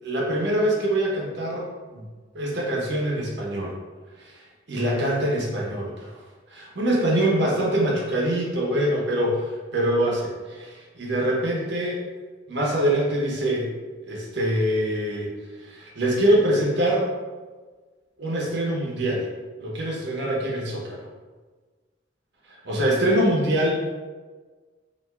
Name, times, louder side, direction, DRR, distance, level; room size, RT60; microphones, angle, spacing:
voice 1, 0.0-2.0 2.3-3.7 4.2-4.3 4.7-6.1 6.5-12.0 12.5-13.7 14.0-15.3 15.6-17.1 18.2-19.3 19.6-21.0 22.5-23.7, right 1 dB, 60° right, -3 dB, 1.0 m, -24 dB
5.5 x 2.8 x 2.5 m, 1.4 s
head